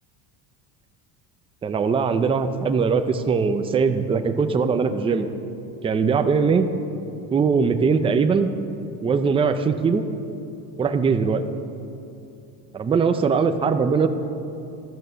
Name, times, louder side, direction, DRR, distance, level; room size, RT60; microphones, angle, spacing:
voice 1, 1.6-5.3 5.8-6.7 7.3-8.5 9.0-10.0 10.8-11.4 12.7-14.1, right 5 dB, 15° right, 7 dB, 0.4 m, -21 dB
15.5 x 12.5 x 6.8 m, 2.7 s
cardioid pair, 165°, 43 cm